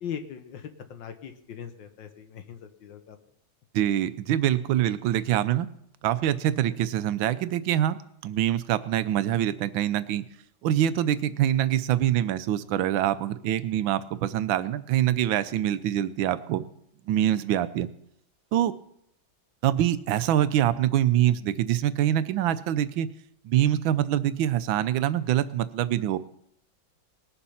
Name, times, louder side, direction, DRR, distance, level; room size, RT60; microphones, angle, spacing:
voice 1, 0.0-0.6 0.9-3.2, left 8 dB, 75° left, 7 dB, 1.8 m, -39 dB
voice 2, 3.7-5.7 6.0-8.0 8.2-10.2 10.6-16.7 17.1-17.9 18.5-18.7 19.6-23.1 23.4-26.2, right 11 dB, 85° right, 14 dB, 1.5 m, -25 dB
20.0 x 6.9 x 5.7 m, 0.73 s
omnidirectional pair, 2.1 m